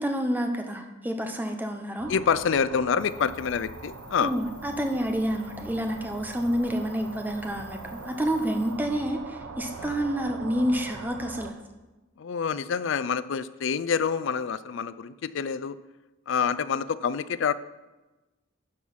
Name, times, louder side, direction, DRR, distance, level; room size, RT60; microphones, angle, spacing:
voice 1, 0.0-2.1 4.2-11.5, equal, 10° right, 4 dB, 0.7 m, -29 dB
sound 1, 2.0-11.5, right 3 dB, 85° right, 0.8 m, -42 dB
voice 2, 2.1-4.3 9.8-10.0 12.2-15.8 16.3-17.5, left 6 dB, 65° left, 15 dB, 0.4 m, -27 dB
sound 2, 3.0-8.8, left 4 dB, 40° left, 3.2 m, -54 dB
11.0 x 4.7 x 5.8 m, 1.1 s
head